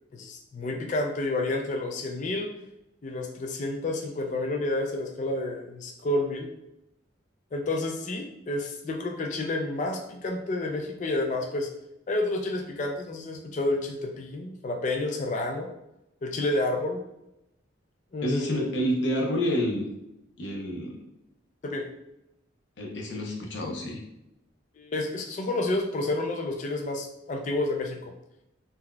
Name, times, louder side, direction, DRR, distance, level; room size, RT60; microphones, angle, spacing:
voice 1, 0.1-2.5 3.0-6.5 7.5-11.7 12.1-15.7 16.2-17.0 18.1-18.7 21.6-21.9 24.8-28.1, left 2 dB, 40° left, 2 dB, 0.3 m, -30 dB
voice 2, 18.2-19.9 20.4-21.0 22.8-24.0, equal, 60° left, 0 dB, 0.7 m, -28 dB
3.8 x 2.7 x 2.2 m, 0.86 s
head